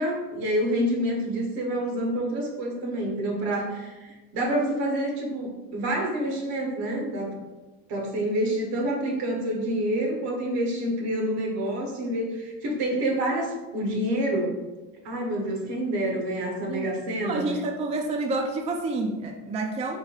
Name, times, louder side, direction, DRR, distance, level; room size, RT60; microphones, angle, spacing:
voice 1, 0.0-7.4 7.9-14.6 15.0-17.4, right 1 dB, 70° right, 0 dB, 1.2 m, -27 dB
voice 2, 17.2-20.0, right 2 dB, 15° right, 3 dB, 0.4 m, -29 dB
3.6 x 2.2 x 4.4 m, 1.2 s
supercardioid pair, 85°, 42 cm